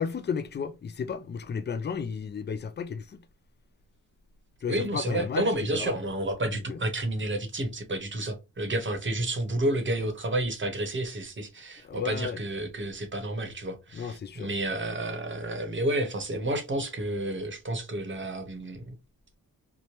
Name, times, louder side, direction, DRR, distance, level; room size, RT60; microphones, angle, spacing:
voice 1, 0.0-3.2 4.6-5.5 5.7-6.0 6.7-6.8 11.8-12.4 13.9-14.5, left 6 dB, 30° left, 0.4 m, -33 dB
voice 2, 4.7-18.9, right 1 dB, 35° right, 0.8 m, -30 dB
2.9 x 2.1 x 3.0 m
cardioid pair, 80°, 34 cm